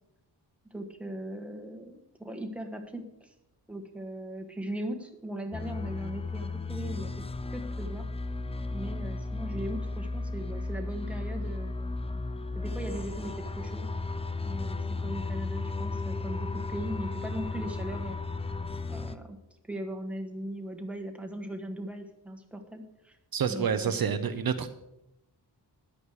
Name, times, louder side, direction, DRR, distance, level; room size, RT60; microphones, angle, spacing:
voice 1, 0.7-3.3 3.7-7.2 7.5-8.1 8.7-11.7 12.5-13.9 14.4-18.2 18.9-19.4 19.7-23.2 23.5-24.1, right 1 dB, 5° right, 4 dB, 1.3 m, -39 dB
sound 1, 5.5-19.2, left 3 dB, 15° left, 0.4 m, -34 dB
voice 2, 23.3-24.7, right 7 dB, 60° right, 9 dB, 0.8 m, -28 dB
13.5 x 10.0 x 4.8 m, 0.88 s
wide cardioid pair, 170°, 40 cm